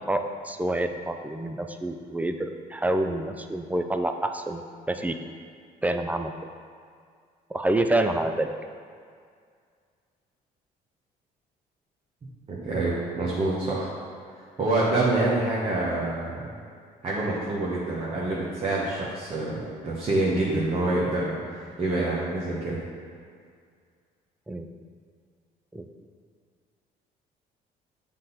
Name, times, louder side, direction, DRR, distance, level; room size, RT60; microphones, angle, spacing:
voice 1, 0.1-5.2 5.8-6.3 7.5-8.5 24.5-24.7 25.7-25.9, right 1 dB, 10° right, 6 dB, 0.3 m, -27 dB
voice 2, 12.5-13.9 14.6-16.6 17.0-22.8, right 2 dB, 35° right, -6 dB, 1.1 m, -26 dB
7.6 x 3.7 x 4.1 m, 2.2 s
cardioid pair, 110°, 17 cm